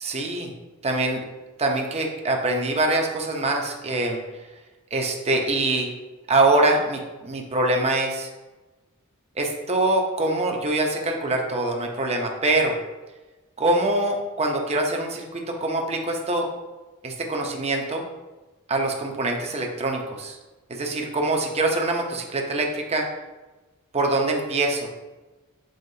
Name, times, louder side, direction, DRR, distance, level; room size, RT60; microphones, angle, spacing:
voice 1, 0.0-0.5 0.8-1.2 1.6-4.2 4.9-5.9 6.3-8.3 9.4-12.7 13.6-16.5 17.0-18.0 18.7-20.4 20.7-23.1 23.9-25.0, right 2 dB, 30° right, 1 dB, 0.8 m, -24 dB
7.8 x 4.3 x 2.8 m, 1.2 s
head